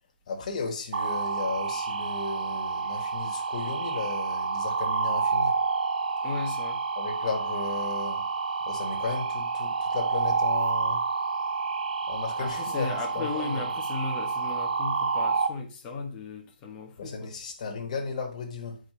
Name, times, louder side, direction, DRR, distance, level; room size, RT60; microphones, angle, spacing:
voice 1, 0.3-5.6 7.0-8.3 8.6-11.0 12.1-13.7 17.0-18.8, left 4 dB, 40° left, 1.8 m, -35 dB
sound 1, 0.9-15.5, right 4 dB, 55° right, 0.8 m, -29 dB
voice 2, 6.2-6.8 12.4-17.4, left 4 dB, 15° left, 1.0 m, -36 dB
8.5 x 5.0 x 3.3 m
hypercardioid pair, 165°, 6 cm